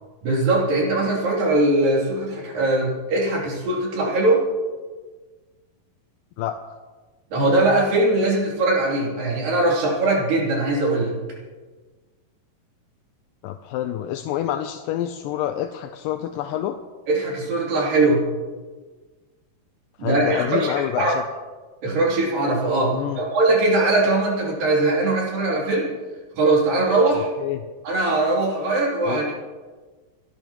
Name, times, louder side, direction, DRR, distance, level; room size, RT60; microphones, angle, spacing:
voice 1, 0.2-4.4 7.3-11.1 17.1-18.2 20.0-21.1 21.8-25.9 26.4-27.3 27.8-29.3, right 2 dB, 70° right, -3 dB, 4.7 m, -21 dB
voice 2, 6.4-6.8 13.4-16.8 20.0-21.2 22.9-23.2 27.4-27.6 29.1-29.2, left 11 dB, 80° left, 6 dB, 2.2 m, -27 dB
29.0 x 12.0 x 3.0 m, 1.4 s
omnidirectional pair, 4.2 m